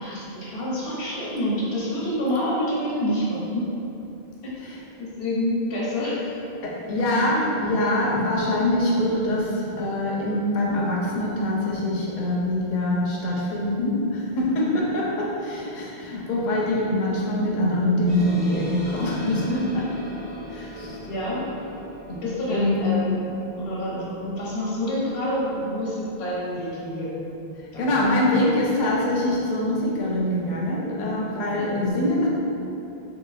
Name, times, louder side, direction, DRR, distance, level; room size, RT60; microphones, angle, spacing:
voice 1, 0.0-3.7 4.4-4.5 5.0-6.4 14.5-14.7 21.0-21.5 22.1-27.2 27.7-28.0 31.0-31.2 31.5-31.8, equal, 85° left, -7 dB, 1.0 m, -28 dB
voice 2, 6.6-19.9 20.5-21.0 22.1-22.2 22.5-22.9 27.8-32.3, left 1 dB, 55° left, -4 dB, 0.6 m, -24 dB
sound 1, 18.1-29.0, left 2 dB, 10° right, 0.7 m, -41 dB
2.9 x 2.9 x 2.3 m, 2.8 s
omnidirectional pair, 1.0 m